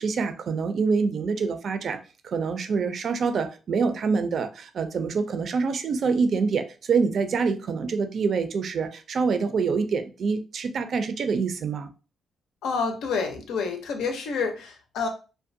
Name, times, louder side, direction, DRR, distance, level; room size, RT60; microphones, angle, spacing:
voice 1, 0.0-2.0 2.2-11.9, right 5 dB, 60° right, 0.4 m, -26 dB
voice 2, 12.6-15.1, left 5 dB, 85° left, 0.5 m, -28 dB
2.5 x 2.1 x 2.6 m
cardioid pair, 90°, 0 cm